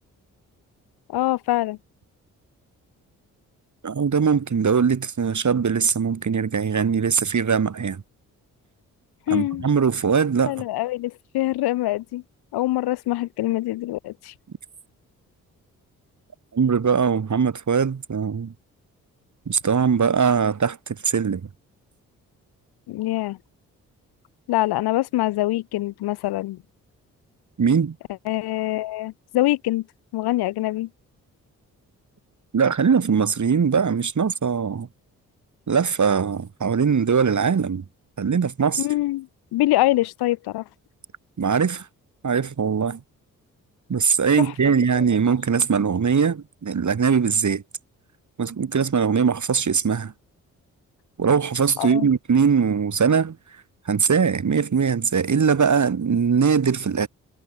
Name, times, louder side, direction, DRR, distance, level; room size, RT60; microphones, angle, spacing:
voice 1, 1.1-1.8 9.3-9.7 10.5-12.2 12.5-14.3 22.9-23.4 24.5-26.6 28.3-29.8 30.1-30.9 38.8-40.6 44.4-45.0 51.8-52.1, left 16 dB, 80° left, 3.8 m, -24 dB
voice 2, 3.8-8.0 9.3-10.6 16.5-18.5 19.5-21.5 27.6-28.0 32.5-34.9 35.7-37.8 38.2-38.9 41.4-41.9 42.2-43.0 43.9-47.6 48.4-50.1 51.2-53.4 53.9-57.1, right 6 dB, 50° right, 6.8 m, -21 dB
hypercardioid pair, 45°, 37 cm